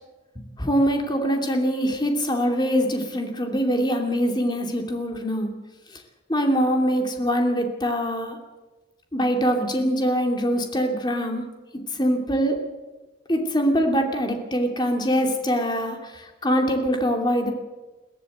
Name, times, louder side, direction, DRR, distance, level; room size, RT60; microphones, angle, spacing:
voice 1, 0.4-5.5 6.3-8.4 9.1-11.4 12.0-12.6 13.3-16.0 16.4-17.5, equal, 25° left, 3 dB, 2.7 m, -23 dB
22.0 x 15.0 x 8.0 m, 1.2 s
head